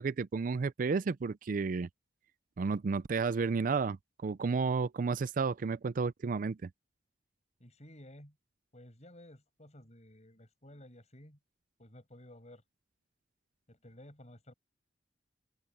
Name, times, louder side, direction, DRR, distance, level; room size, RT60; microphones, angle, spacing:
voice 1, 0.0-1.9 2.6-6.7, right 4 dB, 45° right, 0.4 m, -32 dB
voice 2, 7.6-8.4 8.7-11.4 11.8-12.6 13.7-14.5, left 1 dB, 35° left, 7.8 m, -54 dB
open air
head